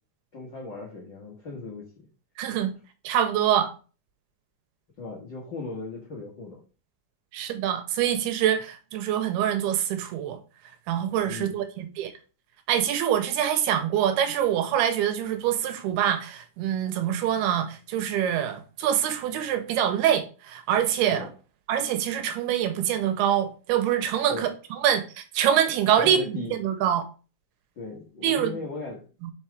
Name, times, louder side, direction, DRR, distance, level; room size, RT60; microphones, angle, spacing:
voice 1, 0.3-2.1 5.0-6.6 11.2-11.6 21.0-21.3 24.3-24.5 26.0-26.6 27.7-29.0, left 3 dB, 85° left, 1.0 m, -37 dB
voice 2, 2.4-2.7 3.0-3.7 7.3-10.4 10.9-12.1 12.7-21.3 21.7-27.0 28.2-28.6 29.2-29.3, right 10 dB, 80° right, 2.8 m, -25 dB
5.7 x 5.3 x 4.8 m
omnidirectional pair, 4.7 m